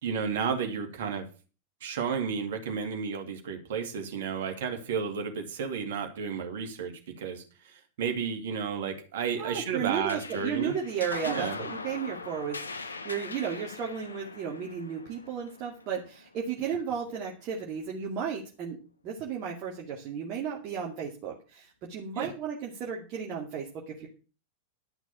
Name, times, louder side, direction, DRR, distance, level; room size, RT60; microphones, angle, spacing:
voice 1, 0.0-1.3 1.8-10.7 11.2-11.6 22.1-22.3, right 6 dB, 55° right, 4 dB, 2.6 m, -32 dB
voice 2, 9.4-18.8 19.0-24.1, right 7 dB, 40° right, -2 dB, 2.4 m, -34 dB
sound 1, 10.1-16.9, left 3 dB, 75° left, 1.0 m, -41 dB
12.0 x 6.0 x 7.3 m, 0.35 s
figure-of-eight pair, 90°, 0 cm